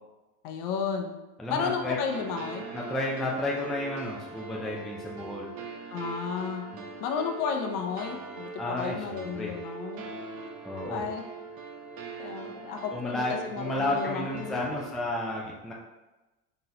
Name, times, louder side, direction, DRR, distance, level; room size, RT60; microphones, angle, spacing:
voice 1, 0.4-1.1 1.5-2.7 5.9-6.7 7.0-10.1 10.9-11.3 12.2-14.6, left 6 dB, 45° left, 4 dB, 0.7 m, -33 dB
voice 2, 1.4-2.0 2.7-5.5 6.7-6.8 8.6-9.5 10.6-11.0 12.9-15.7, left 2 dB, ahead, -2 dB, 0.4 m, -32 dB
sound 1, 2.1-14.9, right 5 dB, 50° right, 0.7 m, -41 dB
3.9 x 3.8 x 2.8 m, 1.1 s
hypercardioid pair, 75°, 45 cm